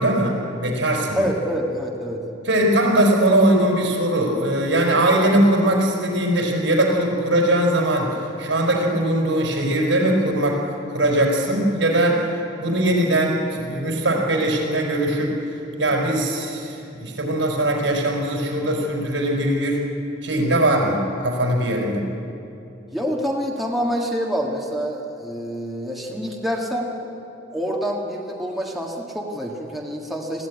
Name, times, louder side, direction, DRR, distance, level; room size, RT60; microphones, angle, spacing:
voice 1, 0.0-1.3 2.4-10.6 10.9-12.2 12.6-19.8 20.2-22.0, right 1 dB, 75° right, 0 dB, 4.9 m, -20 dB
voice 2, 1.2-2.2 22.9-26.9 27.5-30.5, equal, ahead, -2 dB, 1.8 m, -26 dB
20.5 x 15.5 x 9.7 m, 2.8 s
head